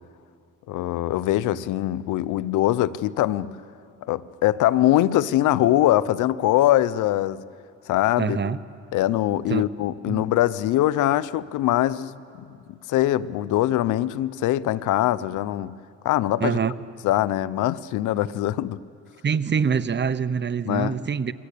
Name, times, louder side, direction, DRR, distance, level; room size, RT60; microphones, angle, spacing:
voice 1, 0.7-3.6 4.1-7.4 7.9-8.4 8.9-12.5 12.9-15.8 16.0-16.6 17.0-18.8 20.7-20.9, left 14 dB, 90° left, 0.7 m, -22 dB
voice 2, 8.2-8.6 9.5-9.6 10.1-10.2 16.4-16.7 19.2-21.3, right 6 dB, 35° right, 1.0 m, -25 dB
30.0 x 23.5 x 8.5 m
cardioid pair, 90°, 30 cm